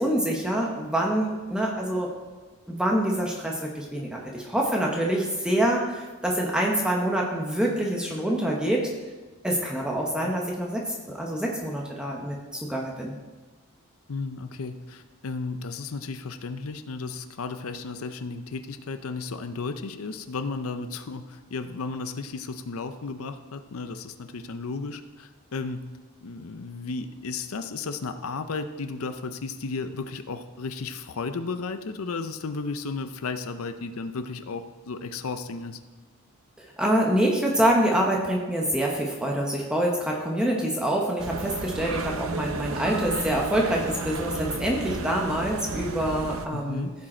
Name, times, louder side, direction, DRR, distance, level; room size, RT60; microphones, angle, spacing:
voice 1, 0.0-2.1 2.7-8.9 9.4-13.2 36.6-46.9, right 1 dB, 5° right, -2 dB, 0.9 m, -26 dB
voice 2, 14.1-25.9 26.2-35.8 46.5-46.9, left 4 dB, 75° left, 9 dB, 0.6 m, -34 dB
sound 1, 41.2-46.5, right 3 dB, 65° right, 0.6 m, -33 dB
15.5 x 5.1 x 4.3 m, 1.3 s
head